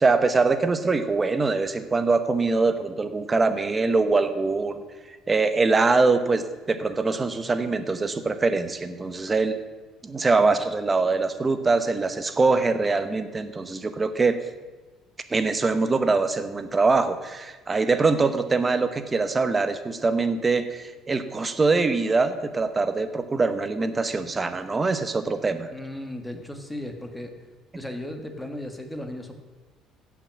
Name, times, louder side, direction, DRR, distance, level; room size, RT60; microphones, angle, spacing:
voice 1, 0.0-4.8 5.1-9.6 10.0-14.4 15.3-25.7, right 3 dB, 20° right, 10 dB, 0.9 m, -23 dB
voice 2, 25.7-27.3 27.7-29.3, left 1 dB, 5° left, 5 dB, 1.3 m, -35 dB
15.5 x 6.0 x 7.4 m, 1.3 s
cardioid pair, 150°, 0 cm